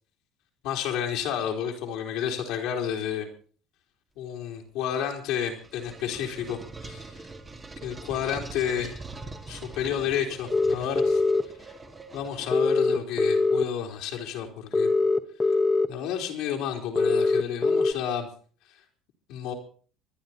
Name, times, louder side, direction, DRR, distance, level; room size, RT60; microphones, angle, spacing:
voice 1, 0.6-3.3 4.2-7.1 7.8-9.0 9.5-11.2 12.1-14.9 15.9-18.3 19.3-19.5, left 9 dB, 70° left, 1 dB, 3.6 m, -31 dB
sound 1, 5.2-13.0, right 3 dB, 25° right, 2.9 m, -43 dB
sound 2, 10.5-11.4 12.5-13.6 14.7-15.9 17.0-17.9, left 3 dB, 20° left, 1.9 m, -22 dB
26.0 x 10.5 x 4.3 m, 0.41 s
hypercardioid pair, 70°, 0 cm